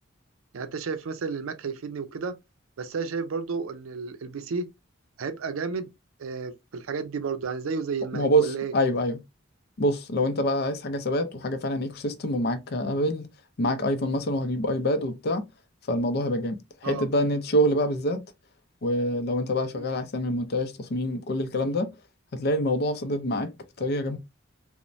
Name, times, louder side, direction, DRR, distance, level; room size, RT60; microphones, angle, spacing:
voice 1, 0.5-2.4 2.8-4.7 5.2-5.9 6.2-8.7 16.8-17.1 19.7-19.9, right 5 dB, 90° right, 0.5 m, -32 dB
voice 2, 8.1-9.2 9.8-13.3 13.6-15.4 15.9-18.2 18.8-21.9 22.3-23.5 23.8-24.2, equal, 50° left, 0.5 m, -26 dB
3.0 x 2.1 x 2.5 m
head